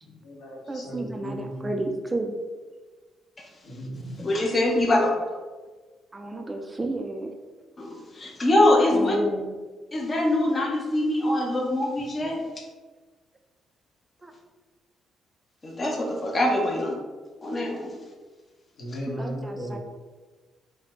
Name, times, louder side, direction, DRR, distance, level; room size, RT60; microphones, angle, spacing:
voice 1, 0.0-1.7 3.6-4.1 18.8-19.8, equal, 65° left, -4 dB, 1.1 m, -36 dB
voice 2, 0.7-2.3 6.1-7.3 8.7-9.5 12.5-12.6 14.2-14.3 19.1-19.8, right 2 dB, 20° right, 4 dB, 0.3 m, -32 dB
voice 3, 3.9-5.1 7.8-9.2 9.9-12.4 15.6-17.0 17.4-17.9, left 1 dB, 30° left, 0 dB, 0.6 m, -23 dB
4.0 x 2.1 x 3.0 m, 1.3 s
cardioid pair, 90°, 0 cm